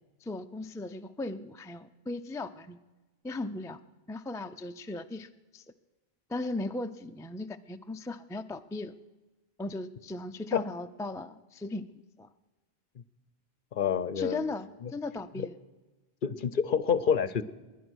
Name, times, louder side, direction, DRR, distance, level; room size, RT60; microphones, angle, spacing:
voice 1, 0.2-2.8 3.2-3.8 4.1-5.6 6.3-8.9 9.6-11.9 12.2-12.3 14.2-15.6, left 2 dB, 5° left, 8 dB, 0.3 m, -37 dB
voice 2, 13.7-14.5 14.8-14.9 15.4-15.5 16.2-17.4, left 7 dB, 55° left, 16 dB, 0.8 m, -28 dB
21.5 x 10.0 x 6.3 m, 1.2 s
omnidirectional pair, 1.1 m